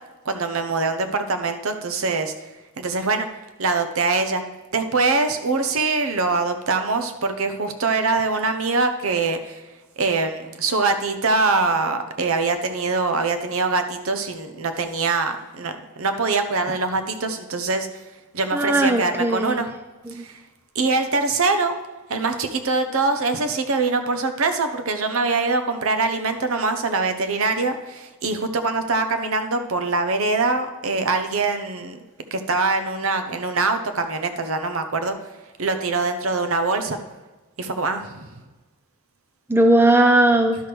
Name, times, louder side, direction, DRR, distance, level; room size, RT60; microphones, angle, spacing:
voice 1, 0.2-2.3 2.8-3.3 3.6-4.4 4.7-9.6 10.0-17.9 18.3-19.7 20.1-20.4 20.7-21.8 22.1-32.0 32.3-35.2 35.6-37.0 37.6-38.3, right 3 dB, 65° right, 7 dB, 0.8 m, -23 dB
voice 2, 18.5-19.6 20.1-20.2 39.5-40.6, right 1 dB, 10° right, 5 dB, 0.5 m, -17 dB
11.0 x 6.1 x 3.3 m, 1.2 s
head